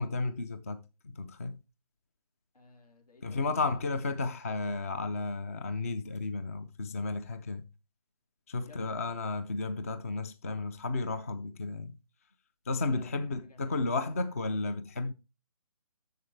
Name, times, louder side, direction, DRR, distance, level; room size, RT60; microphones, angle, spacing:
voice 1, 0.0-1.6 3.2-7.6 8.5-11.9 12.7-15.1, left 3 dB, 25° left, 0.4 m, -33 dB
voice 2, 2.5-3.5 8.7-8.8 12.8-13.7, left 3 dB, 80° left, 3.7 m, -58 dB
10.5 x 7.3 x 3.2 m
hypercardioid pair, 165°, 20 cm